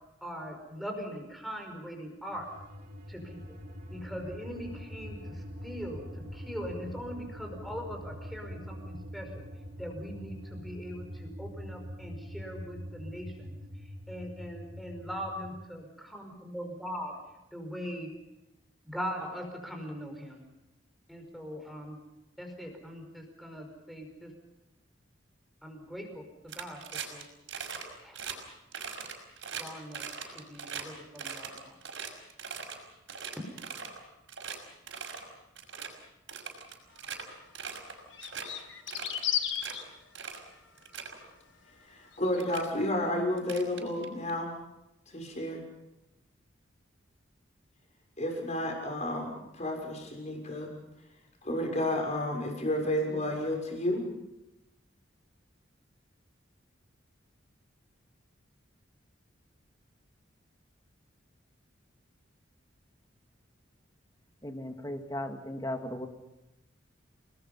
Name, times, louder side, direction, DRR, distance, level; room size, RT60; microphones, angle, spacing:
voice 1, 0.2-2.5 3.1-3.6 3.9-9.5 9.8-17.1 17.5-18.1 18.8-20.4 21.1-22.0 22.4-24.3 25.6-27.3 28.0-28.2 29.6-31.8, equal, ahead, 3 dB, 5.2 m, -41 dB
sound 1, 2.3-15.5, equal, 50° right, 4.1 m, -44 dB
sound 2, 26.5-27.2 27.5-27.8 28.1-28.4 28.7-30.8 31.2-32.8 33.1-34.0 34.3-34.6 34.9-35.2 35.6-35.9 36.3-37.2 37.6-37.9 38.2-38.5 38.9-39.7 40.2-40.4 40.8-41.2 42.0-42.1 42.4-42.7 43.4-44.3, right 7 dB, 75° right, 5.5 m, -40 dB
sound 3, 38.1-39.8 42.1-42.5, left 10 dB, 70° left, 2.0 m, -33 dB
voice 2, 41.9-44.5 45.1-45.6 48.2-49.3 49.5-50.7 51.4-54.0, left 1 dB, 35° left, 1 dB, 6.6 m, -31 dB
voice 3, 64.4-66.1, left 1 dB, 20° left, 5 dB, 2.2 m, -36 dB
29.5 x 20.0 x 5.6 m, 0.94 s
head